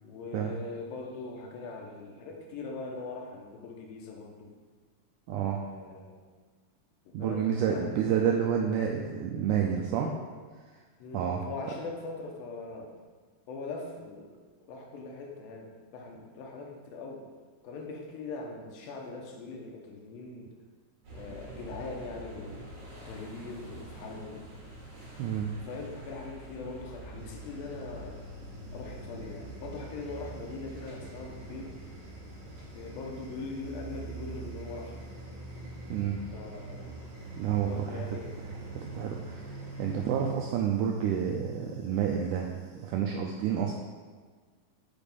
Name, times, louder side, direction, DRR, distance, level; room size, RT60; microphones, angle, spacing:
voice 1, 0.0-4.5 5.3-6.2 7.2-8.0 9.9-10.2 11.0-12.9 13.5-14.4 14.7-17.3 17.6-20.5 21.1-22.6 23.1-24.5 25.6-28.2 28.7-31.7 32.7-35.0 36.3-36.9 37.7-38.4, left 3 dB, 85° left, 1 dB, 2.7 m, -41 dB
voice 2, 5.3-5.6 7.1-10.1 11.1-11.4 25.2-25.5 35.9-36.2 37.4-38.0 38.7-43.8, right 8 dB, 85° right, 1 dB, 1.8 m, -29 dB
sound 1, 21.0-40.3, right 2 dB, 45° right, 3.2 m, -44 dB
Human voice / Buzz, 27.2-42.9, right 1 dB, 65° right, 1.1 m, -55 dB
6.6 x 5.1 x 5.3 m, 1.5 s
omnidirectional pair, 4.1 m